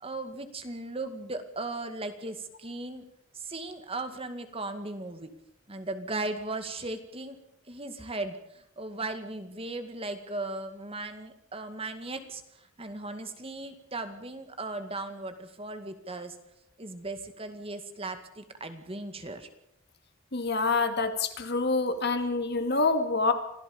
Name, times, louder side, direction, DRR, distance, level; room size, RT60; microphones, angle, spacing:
voice 1, 0.0-3.0 3.3-5.3 5.7-7.4 7.7-16.4 16.8-19.5, right 2 dB, 30° right, 8 dB, 2.1 m, -37 dB
voice 2, 20.3-23.3, left 3 dB, 55° left, 7 dB, 2.4 m, -26 dB
26.0 x 16.0 x 7.1 m, 0.79 s
head